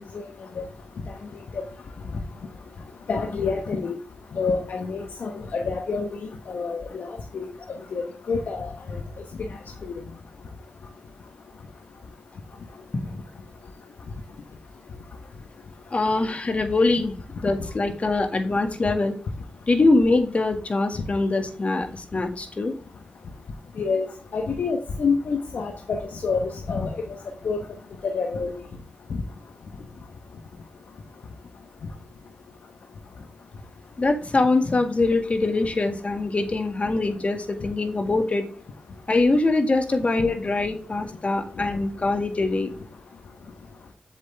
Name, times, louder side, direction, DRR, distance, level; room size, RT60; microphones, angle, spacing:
voice 1, 3.1-3.9 4.3-6.1 6.5-7.5 7.9-9.0 23.8-24.1 24.3-26.9 27.4-27.6 28.0-28.5, left 4 dB, 80° left, 3 dB, 1.2 m, -27 dB
voice 2, 15.9-17.1 17.4-19.2 19.7-22.7 34.0-38.4 39.1-42.7, left 2 dB, 45° left, 5 dB, 2.0 m, -23 dB
7.5 x 7.5 x 3.4 m, 0.39 s
cardioid pair, 55°, 3 cm